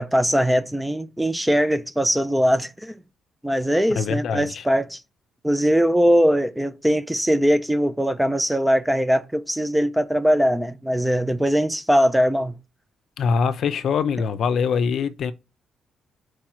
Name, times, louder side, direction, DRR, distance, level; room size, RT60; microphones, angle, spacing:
voice 1, 0.0-3.0 3.4-5.0 5.4-12.6, equal, 5° right, 0.4 m, -21 dB
voice 2, 4.0-4.6 13.2-15.3, left 6 dB, 50° left, 0.6 m, -23 dB
4.8 x 4.6 x 5.8 m
cardioid pair, 165°, 0 cm